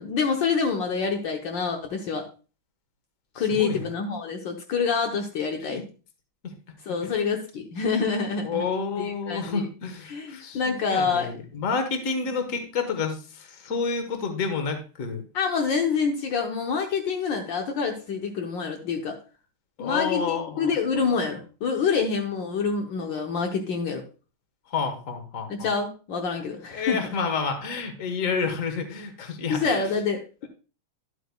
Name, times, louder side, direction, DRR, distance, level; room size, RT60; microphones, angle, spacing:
voice 1, 0.0-2.2 3.3-5.8 6.9-8.6 9.0-9.7 10.1-11.4 15.3-19.1 19.8-24.0 25.5-27.0 29.5-30.2, left 5 dB, 70° left, 2 dB, 1.5 m, -27 dB
voice 2, 3.3-3.8 5.7-5.8 6.4-6.5 7.0-7.1 8.4-15.2 19.8-21.0 24.7-25.7 26.7-29.9, left 5 dB, 45° left, 6 dB, 1.5 m, -29 dB
11.5 x 8.1 x 2.2 m, 0.35 s
omnidirectional pair, 2.2 m